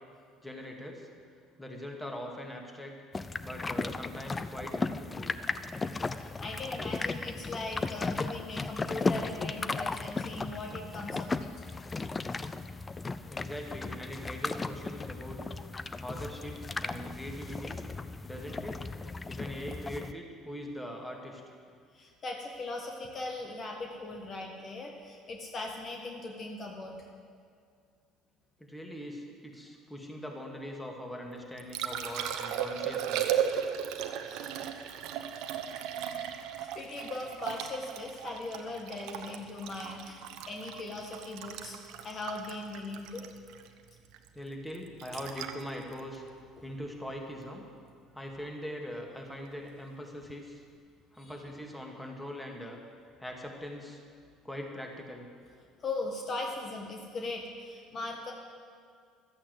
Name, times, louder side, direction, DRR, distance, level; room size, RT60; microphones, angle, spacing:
voice 1, 0.4-1.1 1.6-3.0 3.4-5.3 13.3-15.4 16.0-17.8 18.2-18.9 19.3-21.4 28.6-33.3 41.5-41.6 44.3-46.2 46.6-47.6 48.1-50.6 51.1-52.8 53.2-54.0 54.4-55.3, equal, 10° left, 1 dB, 2.4 m, -41 dB
sound 1, 3.1-20.1, left 3 dB, 25° left, 0.5 m, -36 dB
voice 2, 6.1-11.6 21.9-27.1 34.3-34.6 36.6-41.8 42.0-43.2 51.2-51.3 55.8-58.3, left 2 dB, 40° left, 1 dB, 1.6 m, -39 dB
Liquid, 31.3-47.4 50.2-50.4, right 9 dB, 70° right, 0.9 m, -36 dB
12.5 x 8.4 x 7.8 m, 2.1 s
hypercardioid pair, 75°, 0 cm